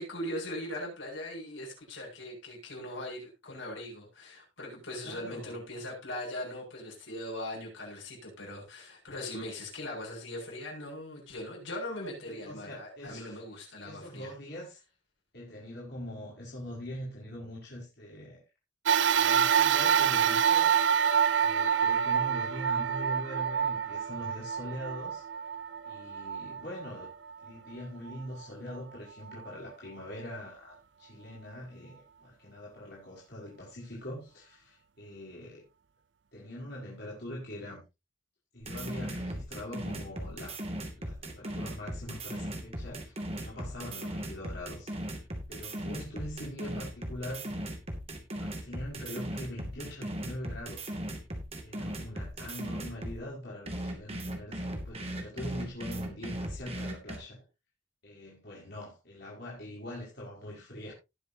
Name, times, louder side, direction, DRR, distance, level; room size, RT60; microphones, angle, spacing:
voice 1, 0.0-14.3 18.9-19.0, left 1 dB, 75° left, 7.0 m, -40 dB
voice 2, 5.0-5.6 12.0-13.4 13.8-14.8 15.3-18.4 19.0-20.8 21.4-25.2 25.9-27.1 27.4-35.7 36.3-37.8 38.5-40.6 41.0-44.9 45.5-47.6 48.4-50.9 51.6-57.4 58.0-60.9, left 1 dB, 55° left, 5.1 m, -43 dB
sound 1, 18.9-27.5 28.1-28.2 29.3-29.4, right 8 dB, 65° right, 0.5 m, -27 dB
sound 2, 38.6-53.2 53.7-57.2, right 1 dB, 30° right, 2.4 m, -37 dB
19.0 x 7.1 x 2.8 m
head